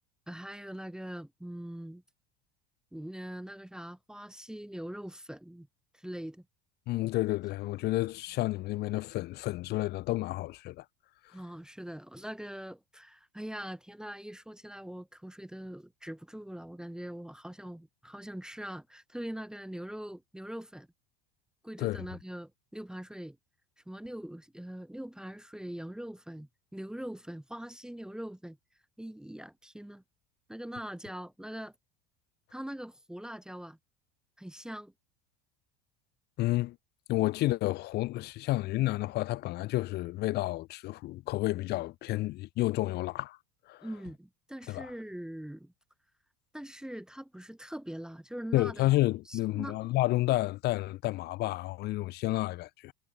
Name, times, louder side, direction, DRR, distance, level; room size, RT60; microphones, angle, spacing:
voice 1, 0.3-2.0 2.9-5.7 5.9-6.4 11.3-20.9 21.6-23.4 23.9-28.6 29.0-30.0 30.5-31.7 32.5-33.8 34.4-34.9 43.8-45.7 46.5-48.9 49.3-49.8, right 1 dB, 5° right, 1.0 m, -42 dB
voice 2, 6.9-10.8 21.8-22.0 36.4-36.8 37.1-43.4 43.7-43.9 44.7-44.9 48.5-52.9, left 18 dB, 50° left, 1.0 m, -30 dB
hypercardioid pair, 80°, 21 cm